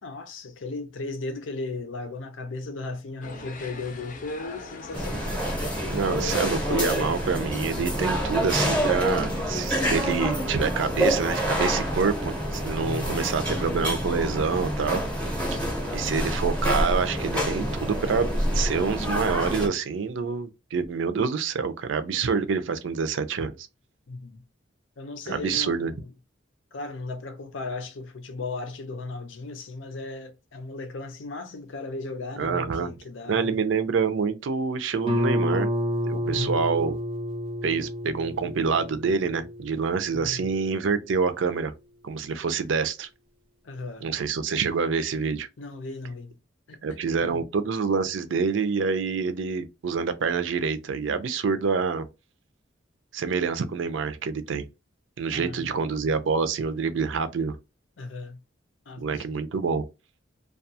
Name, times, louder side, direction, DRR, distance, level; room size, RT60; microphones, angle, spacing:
voice 1, 0.0-5.5 6.9-7.1 12.7-13.2 15.5-15.9 24.1-24.4 25.0-26.1 26.7-33.6 36.2-36.6 40.1-40.5 43.6-44.1 45.6-46.4 46.7-47.4 55.3-55.7 58.0-58.4 58.9-59.2, left 3 dB, 85° left, 0.6 m, -36 dB
sound 1, 3.2-9.6, left 3 dB, 45° left, 0.5 m, -43 dB
sound 2, 4.9-19.7, equal, 5° left, 0.7 m, -27 dB
voice 2, 5.9-15.0 15.9-18.3 18.5-23.7 25.3-25.9 32.4-32.9 33.3-35.7 36.0-37.0 37.6-41.7 42.0-43.1 44.0-45.5 46.8-52.1 53.1-54.7 55.2-57.6 59.0-59.8, right 5 dB, 80° right, 0.4 m, -27 dB
Guitar, 35.1-40.5, equal, 30° right, 0.5 m, -30 dB
2.3 x 2.3 x 2.7 m
head